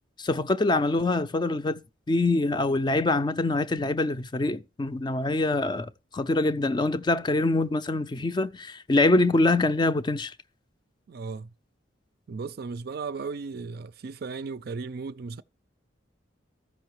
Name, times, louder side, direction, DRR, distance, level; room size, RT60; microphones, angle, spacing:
voice 1, 0.2-1.8 2.1-10.3, left 2 dB, 25° left, 0.4 m, -24 dB
voice 2, 11.1-11.5 12.3-15.4, right 4 dB, 55° right, 0.4 m, -35 dB
13.5 x 5.5 x 4.6 m
head